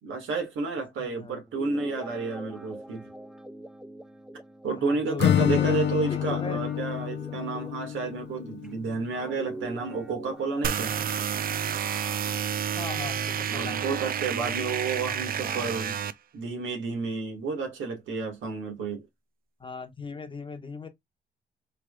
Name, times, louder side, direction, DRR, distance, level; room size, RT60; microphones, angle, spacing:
voice 1, 0.0-3.1 4.6-10.9 13.5-16.0 16.3-19.1, right 4 dB, 75° right, 2.0 m, -31 dB
voice 2, 1.0-1.4 4.7-6.6 12.7-13.8 19.6-20.9, left 4 dB, 25° left, 1.2 m, -38 dB
Guitar, 1.5-8.7 9.1-12.8, right 1 dB, 5° right, 0.6 m, -43 dB
Acoustic guitar / Strum, 5.2-9.1, left 10 dB, 60° left, 0.6 m, -28 dB
sound 1, 10.6-16.1, right 8 dB, 45° right, 0.5 m, -30 dB
4.5 x 3.3 x 2.4 m
cardioid pair, 90°, 20 cm